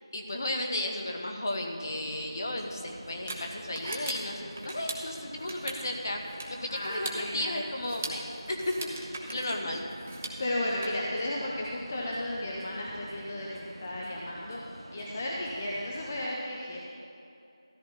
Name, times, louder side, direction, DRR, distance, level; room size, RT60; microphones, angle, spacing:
voice 1, 0.1-6.2 6.5-8.7 9.3-9.8, left 1 dB, 40° left, 2 dB, 1.3 m, -34 dB
sound 1, 1.8-16.3, right 1 dB, 75° right, 0.8 m, -47 dB
sound 2, 2.1-10.8, right 2 dB, 20° right, 0.8 m, -41 dB
voice 2, 6.7-7.6 10.4-14.6 14.9-16.8, left 1 dB, 25° left, -3 dB, 0.9 m, -34 dB
13.5 x 13.0 x 4.1 m, 2.7 s
figure-of-eight pair, 170°, 3 cm